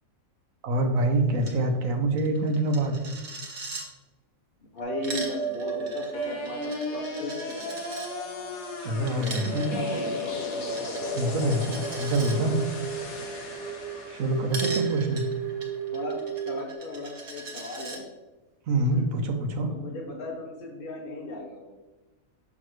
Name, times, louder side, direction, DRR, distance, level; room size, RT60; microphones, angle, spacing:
voice 1, 0.6-3.0 8.8-9.8 11.1-11.6 11.9-12.6 14.1-15.2 18.7-19.7, right 1 dB, 75° right, 4 dB, 1.2 m, -25 dB
Coin (dropping), 1.4-1.6 1.8-1.9 2.2-3.9 4.8-8.1 9.1-12.4 14.5-18.0, right 3 dB, 55° right, 1.2 m, -40 dB
voice 2, 4.7-8.0 9.7-10.3 11.2-11.5 15.9-16.2 16.5-18.0 18.9-19.0 19.7-21.7, left 2 dB, 45° left, -2 dB, 0.9 m, -36 dB
sound 1, 4.8-16.6, right 4 dB, ahead, 1.5 m, -34 dB
sound 2, 6.1-16.2, left 3 dB, 90° left, 1.4 m, -38 dB
6.1 x 6.1 x 3.1 m, 1.1 s
omnidirectional pair, 1.4 m